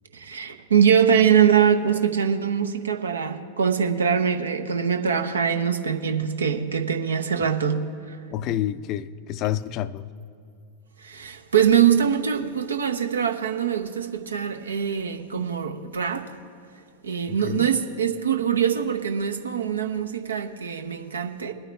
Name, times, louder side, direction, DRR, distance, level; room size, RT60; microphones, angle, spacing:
voice 1, 0.1-8.2 11.0-16.3 17.0-21.5, right 8 dB, 70° right, 0.8 m, -23 dB
voice 2, 8.3-10.1 17.3-17.7, left 12 dB, 40° left, 0.4 m, -29 dB
21.5 x 8.9 x 3.4 m
figure-of-eight pair, 90°, 0 cm